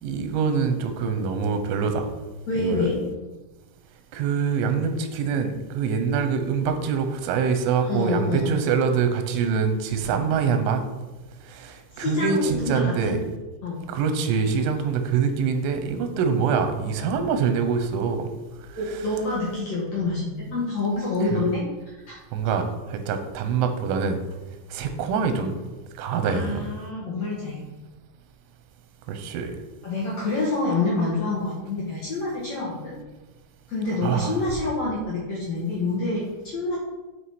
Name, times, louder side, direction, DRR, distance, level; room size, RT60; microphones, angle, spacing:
voice 1, 0.0-2.1 2.6-2.9 4.1-10.8 11.5-13.2 13.9-18.3 18.9-19.0 21.3-21.4 22.3-24.2 24.7-25.5 26.0-26.7 29.1-29.5 34.0-34.4, right 6 dB, 90° right, 7 dB, 3.4 m, -25 dB
voice 2, 2.5-3.0 7.8-8.5 10.0-10.3 11.9-13.2 13.6-13.8 16.1-16.3 18.7-21.6 22.1-22.2 24.8-25.0 26.2-27.6 29.8-32.9 33.7-36.2 36.5-36.8, left 3 dB, 60° left, -6 dB, 1.8 m, -27 dB
9.6 x 4.9 x 4.3 m, 1.1 s
omnidirectional pair, 5.5 m